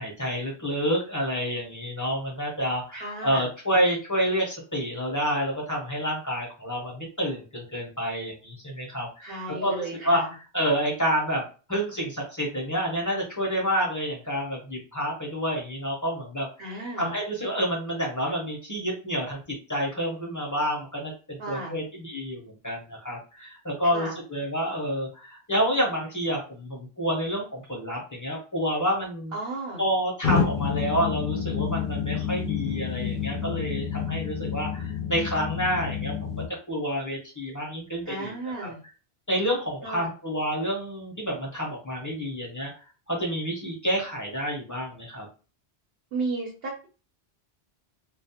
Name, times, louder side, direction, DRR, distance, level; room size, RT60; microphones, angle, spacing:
voice 1, 0.0-11.4 11.7-29.3 29.8-36.3 36.7-38.7 39.3-42.7 43.1-45.3, equal, 20° left, -3 dB, 0.5 m, -29 dB
voice 2, 2.9-3.5 9.2-10.3 16.6-17.1 21.4-21.7 23.9-24.1 29.3-29.8 38.1-38.8 39.8-40.1 46.1-46.9, right 3 dB, 65° right, -4 dB, 0.8 m, -34 dB
sound 1, 30.2-36.5, left 7 dB, 55° left, 0.7 m, -29 dB
2.3 x 2.0 x 2.7 m, 0.35 s
omnidirectional pair, 1.1 m